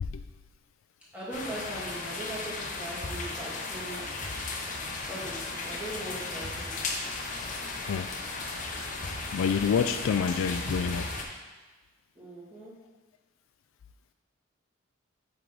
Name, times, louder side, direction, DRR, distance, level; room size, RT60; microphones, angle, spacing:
voice 1, 1.1-4.1 5.1-6.8 12.2-12.8, right 1 dB, 5° right, -10 dB, 2.3 m, -40 dB
sound 1, 1.3-11.2, left 3 dB, 40° left, 0.8 m, -35 dB
voice 2, 9.3-11.3, left 6 dB, 75° left, 8 dB, 0.3 m, -28 dB
8.0 x 4.5 x 4.0 m, 1.2 s
head